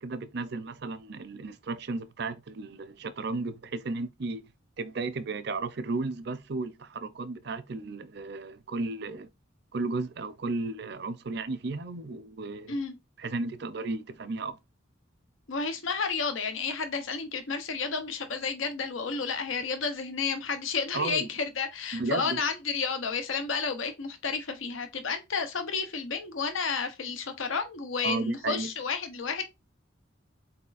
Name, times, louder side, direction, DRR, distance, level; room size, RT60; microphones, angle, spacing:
voice 1, 0.0-4.5 4.8-9.3 9.7-12.8 13.2-14.6 20.9-21.3 21.9-22.4 28.0-28.7, right 3 dB, 55° right, 0.6 m, -34 dB
voice 2, 15.5-29.4, left 5 dB, 90° left, 0.8 m, -31 dB
4.3 x 4.2 x 2.5 m
head